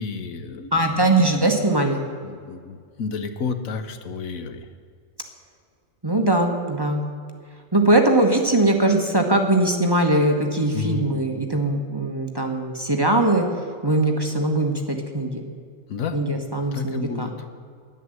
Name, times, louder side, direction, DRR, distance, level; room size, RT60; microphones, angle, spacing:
voice 1, 0.0-1.1 2.2-4.6 10.7-11.0 15.9-16.2 16.7-17.3, left 5 dB, 85° left, 9 dB, 1.4 m, -31 dB
voice 2, 0.7-2.0 6.0-7.0 7.7-13.4 13.8-15.4 16.1-17.3, right 2 dB, 20° right, 3 dB, 1.2 m, -21 dB
11.0 x 10.0 x 7.8 m, 2.1 s
omnidirectional pair, 1.4 m